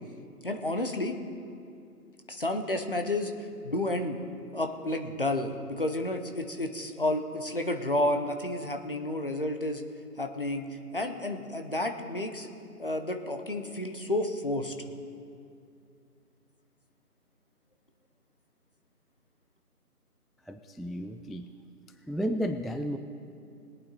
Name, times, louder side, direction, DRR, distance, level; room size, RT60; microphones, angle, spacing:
voice 1, 0.4-1.2 2.3-3.3 3.6-4.2 4.5-9.8 10.2-12.5 12.8-14.7, left 1 dB, 35° left, 5 dB, 0.8 m, -31 dB
voice 2, 20.5-21.5 22.1-23.0, equal, ahead, 7 dB, 0.3 m, -32 dB
21.5 x 8.7 x 4.1 m, 2.5 s
figure-of-eight pair, 165°, 47 cm